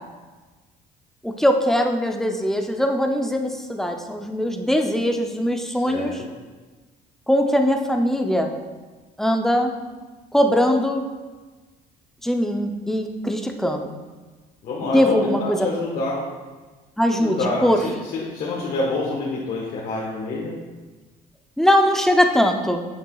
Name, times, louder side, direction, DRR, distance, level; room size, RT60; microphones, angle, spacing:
voice 1, 1.2-6.2 7.3-8.5 9.2-9.7 10.3-11.0 12.2-13.9 14.9-15.7 17.0-17.8 21.6-22.9, equal, ahead, 4 dB, 0.6 m, -21 dB
voice 2, 14.6-16.1 17.2-20.5, left 2 dB, 60° left, -6 dB, 1.3 m, -27 dB
7.5 x 6.8 x 2.3 m, 1.3 s
cardioid pair, 110°, 17 cm